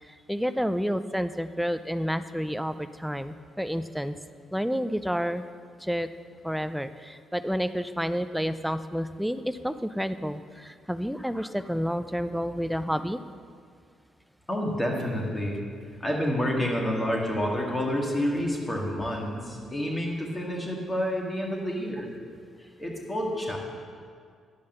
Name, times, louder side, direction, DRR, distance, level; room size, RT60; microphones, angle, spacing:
voice 1, 0.0-4.2 4.5-5.4 5.8-6.1 6.4-13.2, equal, ahead, 11 dB, 0.4 m, -30 dB
voice 2, 14.5-15.6 16.0-22.1 22.8-23.6, equal, 20° left, -1 dB, 2.0 m, -29 dB
11.0 x 5.2 x 6.7 m, 2.1 s
cardioid pair, 90°, 0 cm